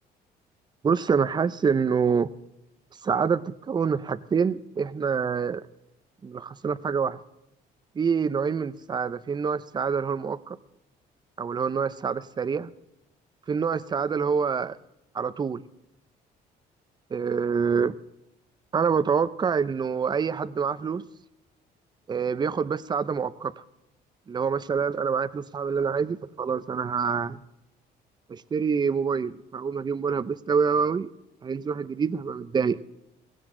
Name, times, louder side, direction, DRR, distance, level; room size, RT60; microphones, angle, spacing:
voice 1, 0.8-2.3 3.0-5.6 6.2-7.2 8.0-10.6 11.4-12.7 13.5-14.8 15.1-15.6 17.1-17.9 18.7-21.0 22.1-23.5 24.3-27.4 28.3-31.1 31.4-32.8, right 6 dB, 25° right, 15 dB, 0.6 m, -26 dB
16.5 x 16.5 x 3.8 m, 0.85 s
cardioid pair, 110°, 17 cm